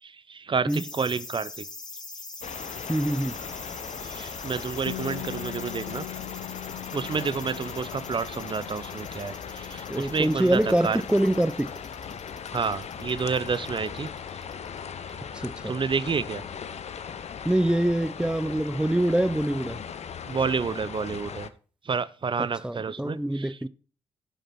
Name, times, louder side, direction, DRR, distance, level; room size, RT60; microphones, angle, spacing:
voice 1, 0.0-1.7 4.0-6.0 6.9-11.0 12.5-14.4 15.1-15.2 15.6-16.4 20.3-21.5 21.8-23.7, right 5 dB, 40° right, 0.8 m, -30 dB
sound 1, 0.7-14.8 15.1-15.2, left 3 dB, 30° left, 2.3 m, -43 dB
sound 2, 2.4-21.5, left 7 dB, 55° left, 0.8 m, -38 dB
voice 2, 2.9-3.4 9.9-11.7 15.4-15.7 17.4-19.8 22.6-23.7, right 1 dB, 5° right, 0.7 m, -24 dB
Bass guitar, 4.9-11.1, left 25 dB, 90° left, 0.4 m, -42 dB
11.5 x 5.2 x 6.0 m
hypercardioid pair, 45°, 13 cm